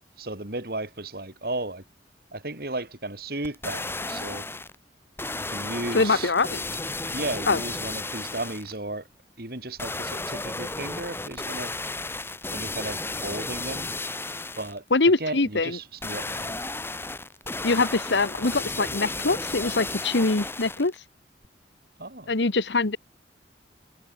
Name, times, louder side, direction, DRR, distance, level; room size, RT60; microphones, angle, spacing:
voice 1, 0.0-1.8 2.3-4.5 5.5-6.3 7.1-9.1 9.4-11.7 12.5-13.9 14.6-14.8 15.2-16.6 22.0-22.3, right 2 dB, 60° right, 4.1 m, -34 dB
sound 1, 3.4-4.8 5.2-8.8 9.8-14.8 16.0-21.0 21.4-21.5, left 2 dB, 15° left, 3.4 m, -33 dB
voice 2, 5.9-6.6 7.5-7.6 14.9-15.8 17.6-20.9 22.3-23.0, left 3 dB, 90° left, 1.3 m, -23 dB
head